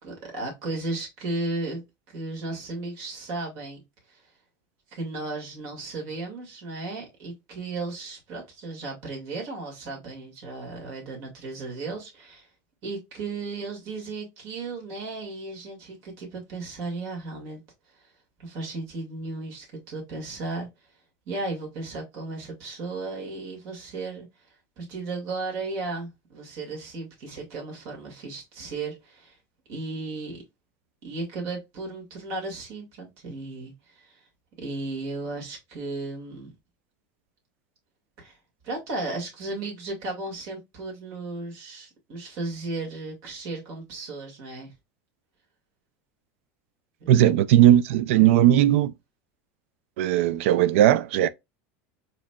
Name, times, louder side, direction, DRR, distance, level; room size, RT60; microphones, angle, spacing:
voice 1, 0.0-1.8 2.1-3.8 4.1-4.3 4.9-12.5 12.8-17.6 17.9-18.1 18.4-20.7 21.3-24.3 24.8-29.4 29.7-30.4 31.0-34.3 34.6-36.5 38.2-38.4 38.6-44.7 47.0-47.1, right 3 dB, 50° right, 1.9 m, -35 dB
voice 2, 47.1-48.9 50.0-51.3, right 12 dB, 75° right, 0.3 m, -18 dB
4.9 x 3.1 x 2.2 m
supercardioid pair, 150°, 7 cm